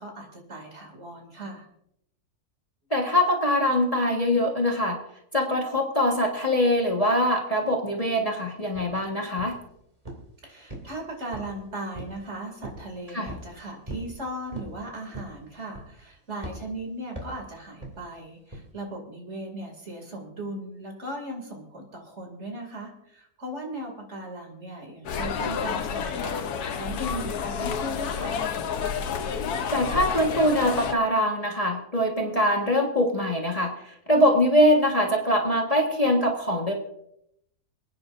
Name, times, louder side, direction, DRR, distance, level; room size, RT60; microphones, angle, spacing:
voice 1, 0.0-1.6 10.4-28.4, right 1 dB, 50° right, 2 dB, 2.8 m, -38 dB
voice 2, 2.9-5.0 5.3-9.5 13.1-13.3 29.7-36.7, left 1 dB, 25° left, 0 dB, 1.5 m, -23 dB
sound 1, 8.8-8.9 9.4-9.7 10.1-10.3 10.7-11.6 11.9-12.2 12.6-12.9 13.3-13.5 13.9-14.1 14.5-14.8 15.1-15.4 15.7-16.1 16.4-16.6 17.2-17.4 17.8-18.0 18.5-18.7, right 1 dB, 25° right, 2.7 m, -39 dB
sound 2, 25.0-30.9, left 6 dB, 85° left, 1.4 m, -30 dB
29.0 x 9.6 x 2.6 m, 0.75 s
omnidirectional pair, 1.6 m